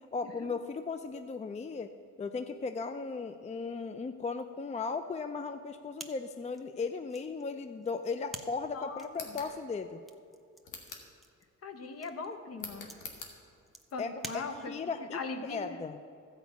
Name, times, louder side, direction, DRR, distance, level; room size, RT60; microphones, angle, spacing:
voice 1, 0.1-1.9 2.2-10.0 14.0-15.2 15.5-16.0, left 4 dB, 25° left, 9 dB, 0.4 m, -36 dB
sound 1, 5.9-15.0, right 1 dB, ahead, 0.8 m, -51 dB
voice 2, 8.7-9.4 11.6-13.0 13.9-15.8, left 4 dB, 50° left, 7 dB, 1.2 m, -41 dB
sound 2, 9.1-9.5 10.6-11.1 12.6-13.4, left 5 dB, 85° left, 1.7 m, -44 dB
14.0 x 5.2 x 8.2 m, 2.5 s
cardioid pair, 90°, 30 cm